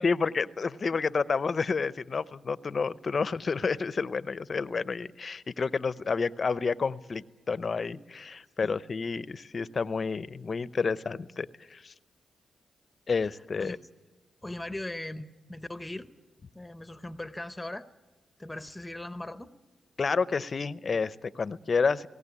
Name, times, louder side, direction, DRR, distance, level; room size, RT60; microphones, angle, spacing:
voice 1, 0.0-11.9 13.1-13.8 20.0-22.1, left 5 dB, 45° left, 16 dB, 0.7 m, -30 dB
voice 2, 14.4-16.1 16.5-17.8 18.4-19.5, left 1 dB, 10° left, 12 dB, 0.9 m, -39 dB
18.0 x 17.5 x 9.7 m, 1.2 s
cardioid pair, 70°, 0 cm